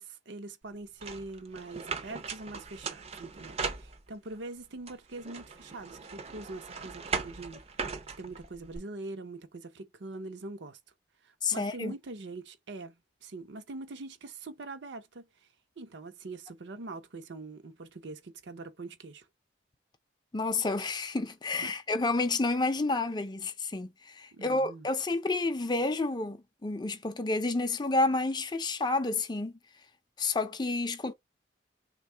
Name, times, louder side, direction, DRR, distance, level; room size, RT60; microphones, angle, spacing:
voice 1, 0.0-7.6 8.2-10.8 11.2-15.3 15.8-19.3 21.6-21.7 24.3-24.9, right 2 dB, 70° right, 0.7 m, -43 dB
sound 1, 1.0-4.4 4.9-8.8, right 5 dB, 35° right, 0.5 m, -39 dB
voice 2, 11.4-11.9 20.3-29.5 30.2-31.1, left 3 dB, 25° left, 0.5 m, -30 dB
3.5 x 2.3 x 4.4 m
head